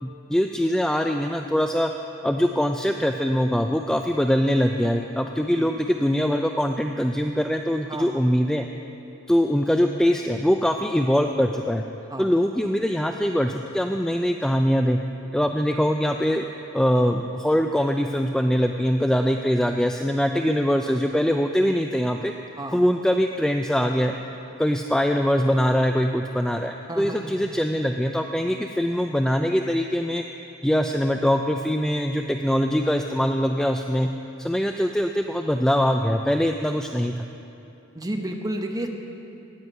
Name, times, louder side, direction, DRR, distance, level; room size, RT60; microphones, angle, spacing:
voice 1, 0.0-1.9 2.2-8.7 9.3-11.8 12.2-15.0 15.3-16.4 16.7-22.3 22.7-24.1 24.6-30.2 30.6-34.1 34.4-37.3, equal, 5° left, 5 dB, 0.3 m, -23 dB
voice 2, 5.2-5.7 7.9-8.1 12.1-12.3 20.2-20.5 22.6-22.8 26.9-27.3 28.3-28.6 37.9-38.9, right 1 dB, 15° right, 3 dB, 1.0 m, -32 dB
16.0 x 9.5 x 5.4 m, 2.8 s
head